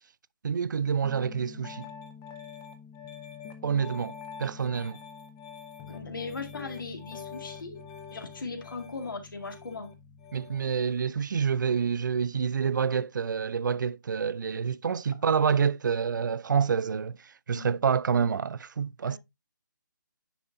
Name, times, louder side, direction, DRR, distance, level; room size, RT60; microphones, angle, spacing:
voice 1, 0.4-1.9 3.6-5.0 10.3-19.2, right 6 dB, 70° right, 0.4 m, -28 dB
Piano, 1.0-10.7, left 6 dB, 10° left, 0.4 m, -45 dB
voice 2, 5.9-7.8 8.1-9.9 17.5-17.8 19.0-19.2, left 3 dB, 80° left, 1.9 m, -38 dB
9.7 x 4.1 x 2.6 m
hypercardioid pair, 165°, 11 cm